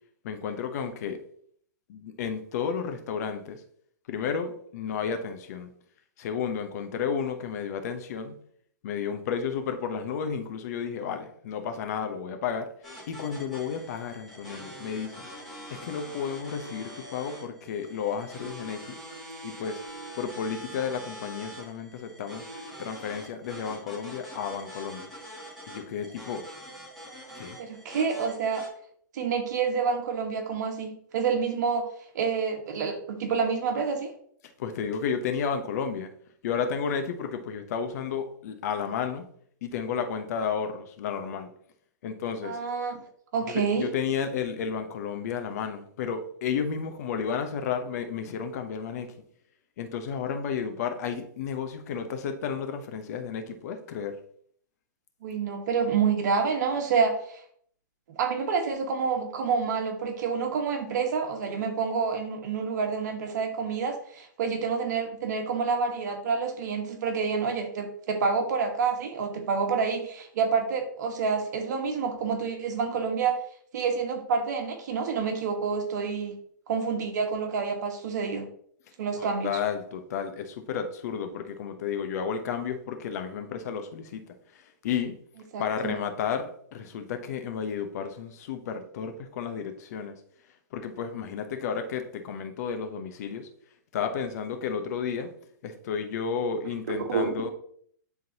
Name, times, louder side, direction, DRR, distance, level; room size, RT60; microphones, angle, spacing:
voice 1, 0.2-1.2 1.9-3.6 4.1-5.7 6.2-8.4 8.8-12.7 13.1-15.2 15.7-19.0 19.4-19.8 20.1-22.5 22.8-25.1 25.7-26.4 27.3-27.6 34.6-36.1 36.4-39.3 39.6-41.5 42.0-42.6 43.5-49.1 49.8-54.2 79.2-84.2 84.5-85.1 85.6-90.1 90.7-93.5 93.9-95.3 95.6-97.5, left 6 dB, 55° left, 7 dB, 1.0 m, -32 dB
sound 1, 12.8-28.7, equal, ahead, 2.4 m, -44 dB
voice 2, 27.6-28.6 29.1-31.9 32.1-34.1 42.4-43.0 43.3-43.9 55.2-57.4 58.1-73.4 73.7-76.3 76.7-78.4 79.0-79.5 85.5-85.9 97.1-97.3, right 5 dB, 60° right, 4 dB, 1.5 m, -28 dB
10.5 x 3.8 x 2.9 m, 0.62 s
hypercardioid pair, 135°, 11 cm